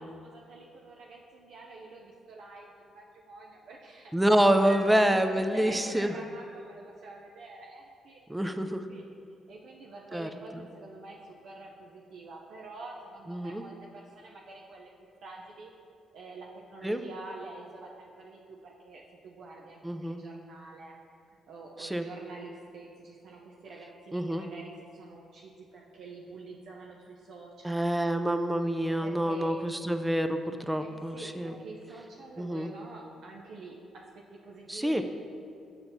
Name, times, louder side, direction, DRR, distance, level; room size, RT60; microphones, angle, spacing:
voice 1, 0.0-9.0 9.5-14.9 15.2-15.7 16.1-21.0 21.5-28.1 29.0-29.6 30.8-35.0, right 3 dB, 70° right, -2 dB, 0.5 m, -47 dB
voice 2, 4.1-6.1 8.3-8.8 10.1-10.6 13.3-13.6 16.8-17.0 19.8-20.2 21.8-22.1 24.1-24.4 27.6-31.5 32.4-32.7 34.7-35.0, right 1 dB, 10° right, 8 dB, 0.3 m, -27 dB
7.1 x 5.7 x 2.7 m, 2.4 s
cardioid pair, 90°, 0 cm